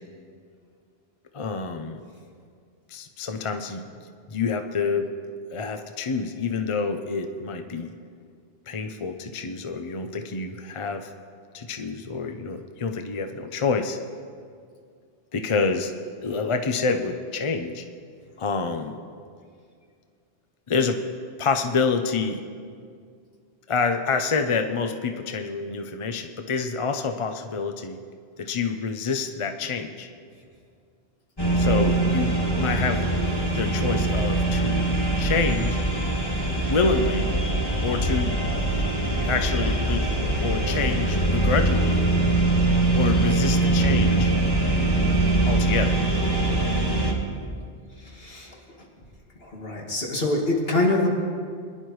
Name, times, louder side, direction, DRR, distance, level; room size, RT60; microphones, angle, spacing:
voice 1, 1.3-2.0 2.9-3.8 4.3-5.1 5.5-7.9 8.7-11.1 11.5-14.0 15.3-15.9 16.2-17.9 18.4-19.0 20.7-21.0 21.4-22.4 23.7-28.0 28.4-30.1 31.5-33.1 33.5-35.8 36.7-37.3 37.8-38.4 39.3-40.1 40.4-42.0 42.9-44.3 45.4-46.0, left 4 dB, 40° left, 6 dB, 0.5 m, -27 dB
sound 1, 31.4-47.1, right 2 dB, 20° left, 1.7 m, -23 dB
voice 2, 48.0-48.6 49.4-51.1, left 2 dB, 60° left, -2 dB, 2.3 m, -25 dB
22.5 x 11.0 x 3.1 m, 2.2 s
omnidirectional pair, 1.1 m